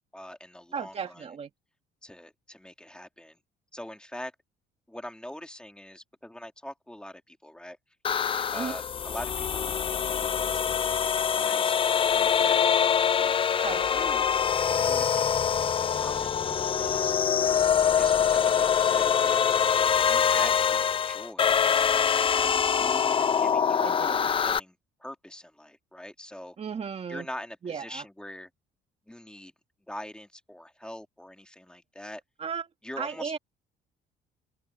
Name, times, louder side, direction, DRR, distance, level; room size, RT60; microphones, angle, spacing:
voice 1, 0.1-1.2 2.0-3.4 3.7-4.3 4.9-7.8 8.5-9.7 10.0-12.6 13.2-13.4 13.7-14.3 14.7-15.4 15.9-17.2 18.0-19.4 20.0-21.6 22.3-23.9 24.4-26.6 27.1-28.5 29.1-29.5 29.9-32.2 32.8-33.4, left 1 dB, 5° left, 2.8 m, -43 dB
voice 2, 0.7-1.5 8.5-8.8 13.6-13.9 23.8-24.3 26.6-27.3 27.6-28.0 32.4-32.7 33.0-33.4, right 6 dB, 40° right, 2.4 m, -35 dB
sound 1, 8.0-24.6, left 7 dB, 30° left, 0.6 m, -24 dB
open air
cardioid pair, 110°, 17 cm